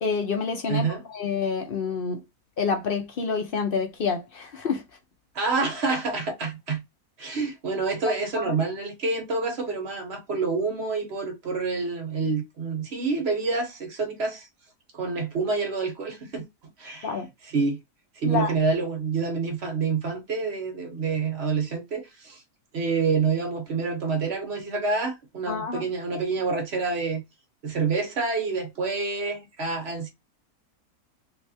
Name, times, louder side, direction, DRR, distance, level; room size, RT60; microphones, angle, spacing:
voice 1, 0.0-2.2 2.6-4.8 8.4-8.5 17.0-17.3 18.3-18.5 25.5-25.8, left 5 dB, 60° left, 0.6 m, -28 dB
voice 2, 0.7-1.1 5.3-6.8 7.2-14.5 14.9-16.5 16.8-17.1 17.4-17.8 18.2-22.4 22.7-27.2 27.6-30.1, right 4 dB, 50° right, 1.0 m, -27 dB
3.2 x 2.7 x 2.7 m
omnidirectional pair, 1.6 m